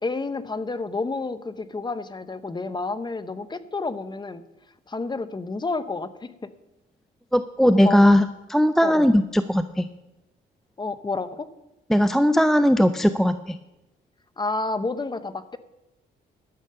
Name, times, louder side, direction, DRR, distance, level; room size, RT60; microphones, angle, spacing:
voice 1, 0.0-4.4 4.9-6.5 7.6-8.1 8.8-9.1 10.8-11.5 14.4-15.6, left 3 dB, 20° left, 12 dB, 0.8 m, -30 dB
voice 2, 7.3-8.2 8.5-9.9 11.9-13.6, equal, ahead, 11 dB, 0.4 m, -18 dB
12.0 x 7.2 x 6.6 m, 0.97 s
cardioid pair, 90°, 20 cm